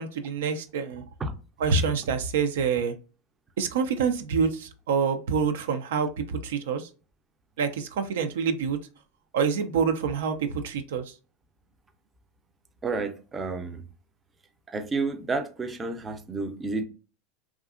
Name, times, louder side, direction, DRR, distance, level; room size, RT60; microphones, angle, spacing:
voice 1, 0.0-1.0 1.6-2.9 3.6-6.9 7.6-8.8 9.3-11.0, right 6 dB, 80° right, 0.4 m, -26 dB
voice 2, 12.8-13.8 14.7-16.8, right 3 dB, 20° right, 0.5 m, -30 dB
2.6 x 2.3 x 2.4 m
hypercardioid pair, 105°, 0 cm